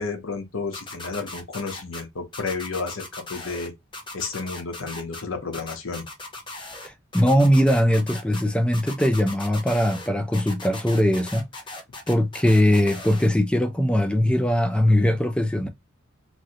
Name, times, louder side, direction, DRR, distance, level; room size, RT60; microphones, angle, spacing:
voice 1, 0.0-3.7 4.1-6.1, left 4 dB, 80° left, 0.8 m, -31 dB
sound 1, 0.7-2.0 2.3-3.7 3.9-5.2 5.5-6.9 7.1-8.4 8.7-10.1 10.3-13.3, left 2 dB, 25° left, 0.7 m, -38 dB
voice 2, 6.8-11.5 12.1-15.7, equal, 5° left, 0.4 m, -21 dB
3.1 x 2.6 x 2.7 m
head